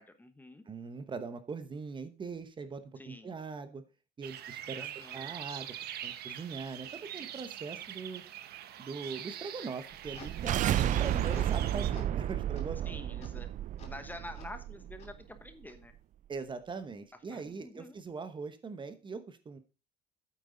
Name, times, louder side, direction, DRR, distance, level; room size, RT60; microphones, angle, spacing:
voice 1, 0.0-0.6 3.0-3.3 4.8-5.3 12.8-13.5 13.8-15.9 17.3-18.0, left 1 dB, 10° left, 9 dB, 1.1 m, -48 dB
voice 2, 0.7-3.8 4.2-4.9 5.1-5.7 6.0-8.2 8.8-13.0 16.3-19.6, right 4 dB, 25° right, 11 dB, 1.1 m, -41 dB
sound 1, 4.2-11.9, right 11 dB, 60° right, 1.1 m, -44 dB
sound 2, 9.8-11.6 11.9-12.2 12.6-12.7 13.2-13.3 13.8-13.9 14.3-14.5 15.0-15.1 15.7-15.8, left 4 dB, 35° left, 2.9 m, -52 dB
sound 3, 10.0-15.2, right 12 dB, 45° right, 0.4 m, -32 dB
9.1 x 8.3 x 3.9 m, 0.31 s
cardioid pair, 115°, 19 cm